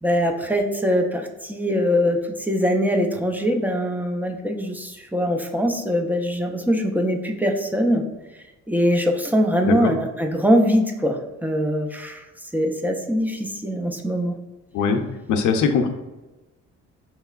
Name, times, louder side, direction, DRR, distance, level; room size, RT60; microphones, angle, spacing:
voice 1, 0.0-8.0 8.7-12.2 12.5-14.3, equal, 5° right, 3 dB, 0.5 m, -22 dB
voice 2, 15.3-15.9, left 5 dB, 80° left, 5 dB, 0.6 m, -20 dB
5.5 x 2.9 x 2.4 m, 1.1 s
cardioid pair, 90°, 30 cm